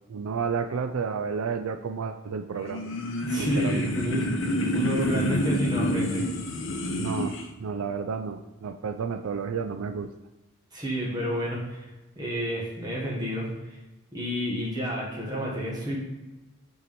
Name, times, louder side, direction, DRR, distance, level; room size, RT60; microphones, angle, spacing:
voice 1, 0.1-2.9 3.4-3.9 7.0-10.1, right 5 dB, 80° right, 8 dB, 0.4 m, -31 dB
sound 1, 2.6-7.5, left 1 dB, 60° left, 0.7 m, -28 dB
voice 2, 3.2-4.3 4.7-6.3 10.7-11.9 12.1-13.5 14.1-16.0, equal, 20° right, -5 dB, 1.6 m, -30 dB
6.9 x 4.7 x 4.3 m, 1.1 s
head